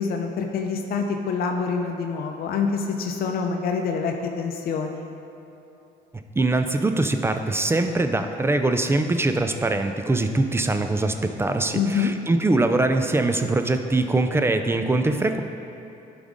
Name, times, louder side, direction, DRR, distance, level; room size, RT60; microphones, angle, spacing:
voice 1, 0.0-5.0 11.7-12.1, left 5 dB, 65° left, 3 dB, 0.7 m, -26 dB
voice 2, 6.4-15.4, right 2 dB, 15° right, 7 dB, 0.4 m, -22 dB
11.0 x 5.1 x 3.7 m, 2.9 s
cardioid pair, 110°, 17 cm